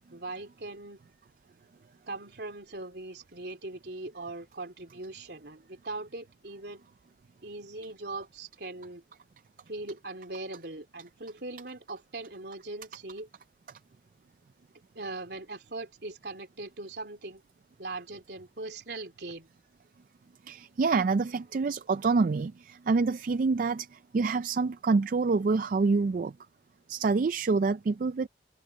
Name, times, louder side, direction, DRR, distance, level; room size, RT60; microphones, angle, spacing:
voice 1, 0.1-1.0 2.1-6.9 7.4-9.0 9.7-13.3 15.0-17.4 17.8-19.5, right 2 dB, 65° right, 3.5 m, -40 dB
voice 2, 20.5-26.3 26.9-28.3, right 4 dB, 50° right, 0.4 m, -27 dB
open air
head